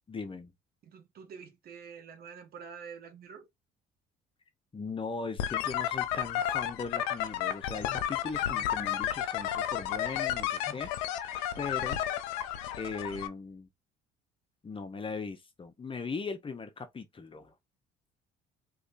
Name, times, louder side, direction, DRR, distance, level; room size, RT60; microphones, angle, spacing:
voice 1, 0.1-0.5 4.7-10.9 11.2-12.0 12.8-13.7 14.6-17.5, left 4 dB, 30° left, 0.9 m, -39 dB
voice 2, 0.8-3.5, right 6 dB, 55° right, 1.4 m, -47 dB
sound 1, 5.4-13.3, left 11 dB, 90° left, 0.6 m, -32 dB
3.6 x 3.1 x 2.6 m
supercardioid pair, 80°, 19 cm